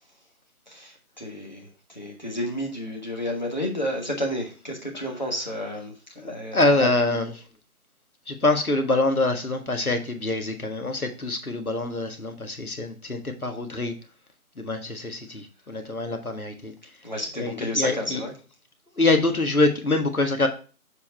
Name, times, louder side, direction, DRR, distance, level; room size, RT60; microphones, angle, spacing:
voice 1, 0.7-7.2 17.0-18.3, equal, 30° left, 0 dB, 1.4 m, -31 dB
voice 2, 6.2-7.3 8.3-13.9 14.6-16.7 17.4-18.2 18.9-20.5, left 2 dB, 70° left, 5 dB, 1.7 m, -25 dB
7.2 x 4.4 x 4.3 m, 0.36 s
figure-of-eight pair, 175°, 44 cm